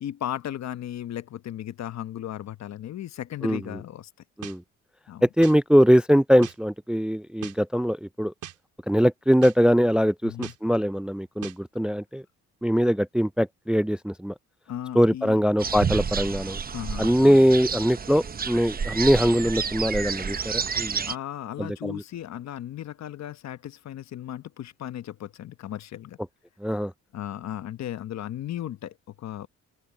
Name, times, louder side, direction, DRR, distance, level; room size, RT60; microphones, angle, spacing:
voice 1, 0.0-4.1 5.1-5.3 10.2-10.5 14.7-15.4 16.7-17.4 21.1-26.2 27.1-29.5, left 11 dB, 60° left, 1.0 m, -36 dB
sound 1, 4.4-4.6 5.4-5.6 6.4-6.6 7.4-7.6 8.4-8.6 9.4-9.6 10.4-10.6 11.4-11.6, right 12 dB, 80° right, 3.6 m, -39 dB
voice 2, 5.2-8.3 8.9-12.2 12.6-14.3 14.9-16.6 17.0-21.0 21.6-22.0 26.6-26.9, equal, 5° right, 0.4 m, -22 dB
sound 2, 15.6-21.2, right 6 dB, 30° right, 0.9 m, -30 dB
open air
cardioid pair, 90°, 30 cm